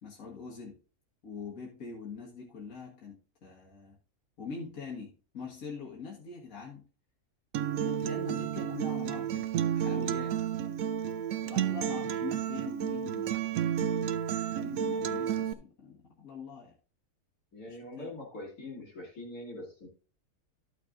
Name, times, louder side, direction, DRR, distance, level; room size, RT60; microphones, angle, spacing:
voice 1, 0.0-0.8 1.2-4.0 4.4-6.9 7.8-10.4 11.4-13.9 14.5-16.7 17.7-18.1, left 4 dB, 65° left, -3 dB, 2.0 m, -43 dB
Acoustic guitar, 7.5-15.5, right 9 dB, 70° right, 0.9 m, -31 dB
voice 2, 17.5-19.9, left 1 dB, 85° left, 0 dB, 3.6 m, -43 dB
13.5 x 6.5 x 2.6 m, 0.37 s
omnidirectional pair, 1.6 m